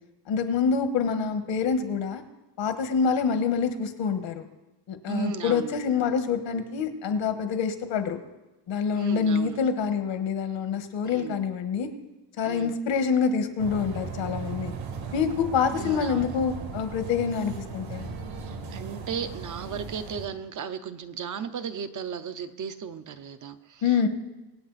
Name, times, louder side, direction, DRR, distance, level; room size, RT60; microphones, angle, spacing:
voice 1, 0.3-2.2 2.6-4.5 4.9-8.2 8.7-11.9 12.4-14.7 15.1-18.1 23.8-24.1, left 6 dB, 70° left, 8 dB, 1.5 m, -26 dB
voice 2, 5.1-5.7 8.9-9.6 11.1-11.4 12.4-12.7 15.7-16.3 18.5-24.1, right 7 dB, 40° right, 9 dB, 0.7 m, -35 dB
sound 1, 13.6-20.3, right 4 dB, 80° right, 2.7 m, -37 dB
24.5 x 8.9 x 4.1 m, 1.1 s
cardioid pair, 170°, 46 cm